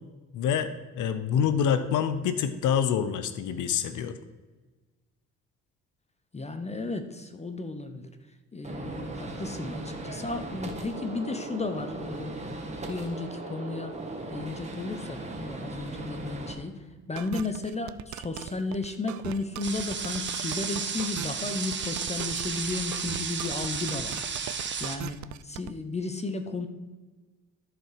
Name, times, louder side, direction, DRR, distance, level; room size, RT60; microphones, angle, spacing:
voice 1, 0.3-4.2, left 8 dB, 80° left, 11 dB, 0.7 m, -26 dB
voice 2, 6.3-8.1 8.5-14.0 14.3-16.8 17.1-24.2 24.8-26.7, left 3 dB, 20° left, 8 dB, 0.9 m, -34 dB
Gunshot gunfire, 8.6-16.5, right 2 dB, 20° right, 1.7 m, -38 dB
sound 1, 17.2-25.7, right 13 dB, 70° right, 0.5 m, -39 dB
sound 2, 19.6-25.0, right 6 dB, 40° right, 1.1 m, -33 dB
13.5 x 4.6 x 4.9 m, 1.3 s
cardioid pair, 90°, 30 cm